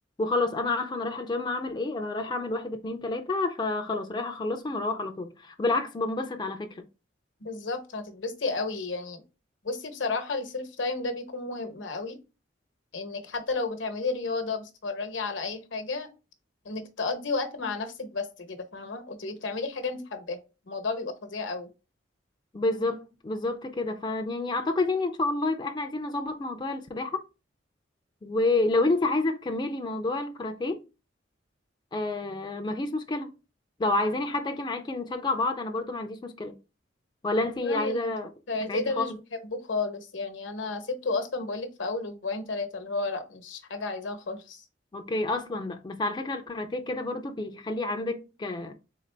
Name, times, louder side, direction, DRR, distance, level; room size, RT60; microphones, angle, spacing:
voice 1, 0.2-6.8 22.5-27.2 28.2-30.8 31.9-33.3 33.8-36.6 37.2-38.3 38.7-39.2 44.9-48.7, left 2 dB, 25° left, 0.4 m, -29 dB
voice 2, 7.4-9.2 9.6-12.2 12.9-16.1 16.6-20.4 20.7-21.7 37.6-38.1 38.5-44.6, left 3 dB, 80° left, 0.9 m, -32 dB
3.8 x 3.6 x 3.3 m
head